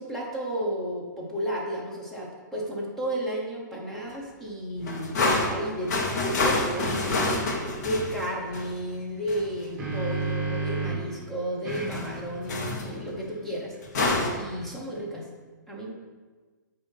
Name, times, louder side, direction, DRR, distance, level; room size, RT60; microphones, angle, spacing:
voice 1, 0.0-7.3 7.8-13.9 14.4-15.3 15.7-15.9, equal, 5° left, -4 dB, 0.9 m, -33 dB
sound 1, 4.8-8.8 9.3-9.5 11.6-12.2 12.5-12.9 13.8-14.4, left 2 dB, 55° left, 1.1 m, -27 dB
sound 2, 6.8-6.9 9.3-11.1 11.6-15.0, right 3 dB, 15° right, 1.3 m, -34 dB
7.6 x 2.7 x 5.4 m, 1.4 s
hypercardioid pair, 155°, 10 cm